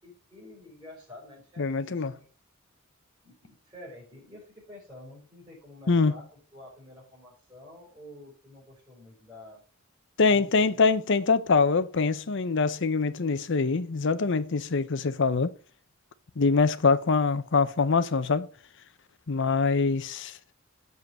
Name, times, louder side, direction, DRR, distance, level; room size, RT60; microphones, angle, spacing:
voice 1, 0.0-2.3 3.2-9.6 10.3-11.3, left 1 dB, 20° right, 5.5 m, -49 dB
voice 2, 1.6-2.1 5.9-6.1 10.2-15.5 16.4-18.5 19.3-20.4, left 4 dB, 60° left, 0.7 m, -24 dB
7.8 x 5.6 x 6.6 m
head